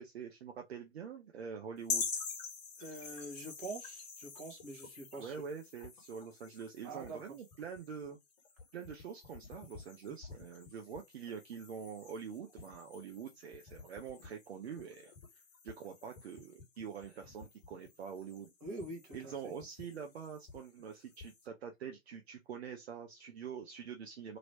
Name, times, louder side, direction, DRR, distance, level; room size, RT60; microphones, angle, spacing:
voice 1, 0.0-2.1 5.2-8.2 8.7-15.1 15.6-18.5 19.1-24.4, right 7 dB, 55° right, 0.8 m, -45 dB
sound 1, 1.8-21.5, left 5 dB, 30° left, 1.5 m, -47 dB
voice 2, 2.8-5.4 6.8-7.2 18.6-19.5, right 2 dB, 25° right, 1.3 m, -45 dB
3.0 x 2.9 x 2.6 m
figure-of-eight pair, 120°, 39 cm